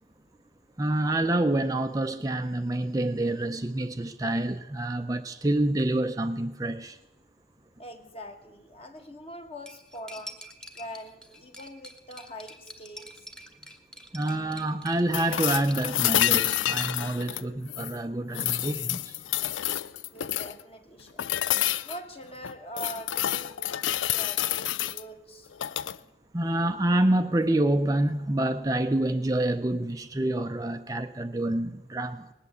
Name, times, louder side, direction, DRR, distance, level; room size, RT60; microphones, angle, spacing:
voice 1, 0.8-7.0 14.1-19.2 26.3-32.3, right 1 dB, 20° right, 0.5 m, -27 dB
voice 2, 7.8-10.4 10.7-13.3 20.1-21.3 21.8-25.5, equal, 30° left, 1.5 m, -43 dB
Cutlery silverware, 9.7-15.9, equal, 5° left, 0.9 m, -47 dB
sound 1, 15.1-18.0 18.3-20.6 21.2-22.0 22.4-25.0 25.5-26.0 28.0-28.1, left 12 dB, 90° left, 0.4 m, -28 dB
19.5 x 8.4 x 8.2 m
head